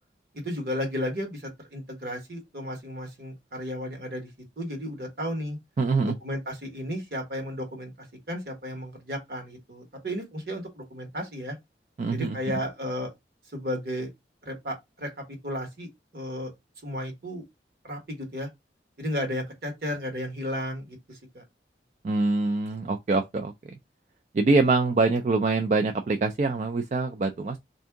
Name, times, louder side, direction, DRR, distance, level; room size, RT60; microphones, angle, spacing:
voice 1, 0.3-4.3 4.6-5.6 6.0-11.6 12.1-13.1 13.5-14.1 14.4-16.5 16.8-17.4 17.8-18.5 19.0-21.4, equal, 60° right, 1.3 m, -34 dB
voice 2, 5.8-6.1 12.0-12.4 22.0-23.5 24.3-27.6, right 3 dB, 40° right, 0.3 m, -24 dB
3.6 x 2.6 x 3.5 m
head